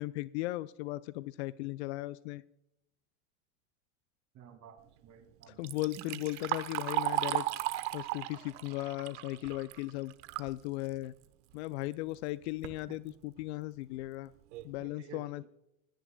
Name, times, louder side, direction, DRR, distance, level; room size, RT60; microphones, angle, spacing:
voice 1, 0.0-2.4 5.5-7.5 7.9-10.1 10.4-11.1 11.5-14.3 14.6-15.5, left 18 dB, 55° left, 18 dB, 0.5 m, -37 dB
voice 2, 4.3-5.7 6.1-6.2 12.9-13.0 14.8-15.5, right 8 dB, 40° right, 7 dB, 2.3 m, -52 dB
Liquid, 5.4-10.5 10.9-11.0 11.9-12.0 12.4-12.8 13.4-13.5 14.0-14.1 14.5-14.8, right 16 dB, 60° right, 1.1 m, -36 dB
27.0 x 10.0 x 2.2 m, 0.84 s
hypercardioid pair, 90°, 41 cm